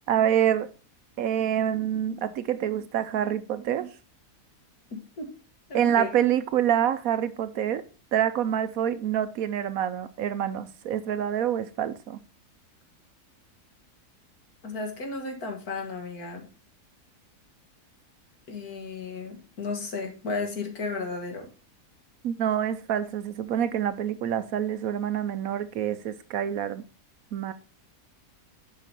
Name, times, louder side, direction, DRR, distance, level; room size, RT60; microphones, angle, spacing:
voice 1, 0.1-0.7 1.2-3.9 5.7-7.8 8.1-12.2 22.2-26.8 27.3-27.5, right 10 dB, 70° right, 1.0 m, -26 dB
voice 2, 4.9-5.3 5.7-6.1 14.6-16.5 18.5-21.5, left 3 dB, 70° left, 2.2 m, -34 dB
7.2 x 5.6 x 5.2 m
omnidirectional pair, 1.7 m